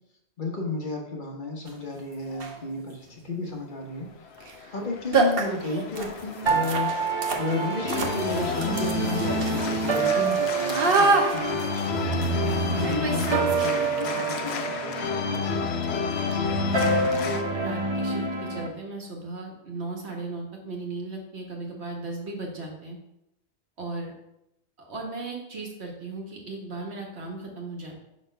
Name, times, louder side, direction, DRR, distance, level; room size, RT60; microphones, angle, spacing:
voice 1, 0.4-4.1 4.7-7.0 7.4-12.4 12.8-15.6, left 2 dB, 50° left, 1 dB, 1.1 m, -33 dB
sound 1, 1.7-1.8 2.3-2.7 4.4-4.5 4.8-4.9 5.1-14.0, right 3 dB, 60° right, 1.1 m, -28 dB
Organ, 4.3-17.4, left 5 dB, 75° left, 0.9 m, -31 dB
sound 2, 6.5-18.7, right 4 dB, 30° right, 0.6 m, -28 dB
voice 2, 16.6-23.0 23.8-24.1 24.9-27.9, right 2 dB, 75° right, 0 dB, 1.6 m, -36 dB
5.3 x 4.2 x 5.5 m, 0.86 s
omnidirectional pair, 1.1 m